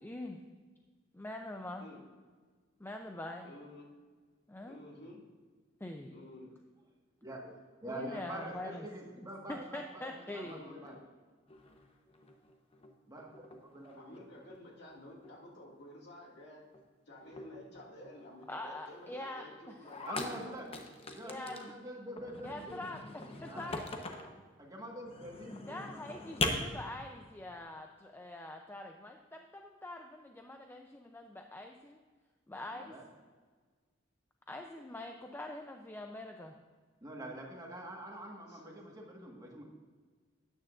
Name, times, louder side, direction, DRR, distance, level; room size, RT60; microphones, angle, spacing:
voice 1, 0.0-0.4 1.1-1.9 2.8-3.5 4.5-4.8 5.8-6.1 7.9-8.9 9.2-10.6 18.5-19.8 21.2-21.6 22.4-23.9 25.6-32.0 32.5-32.9 34.5-36.5, left 1 dB, 10° left, 3 dB, 0.5 m, -44 dB
voice 2, 3.4-3.9 4.7-5.2 6.1-6.5 8.5-8.9 10.3-10.9 14.0-16.7 17.1-20.5 38.5-38.7, left 1 dB, 60° left, -2 dB, 2.2 m, -52 dB
voice 3, 7.2-7.5 7.8-11.0 13.1-13.5 13.7-14.2 20.1-20.7 21.1-22.8 23.5-23.7 24.6-25.8 32.7-33.0 37.0-39.6, right 1 dB, 20° right, -1 dB, 1.5 m, -45 dB
sound 1, 11.5-12.9 13.2-14.6 14.9-15.5 15.7-16.0 16.4-16.5 16.7-16.8 17.2-21.7 22.1-24.4 25.0-26.5, left 2 dB, 30° left, 0.9 m, -42 dB
13.0 x 9.1 x 2.5 m, 1.5 s
head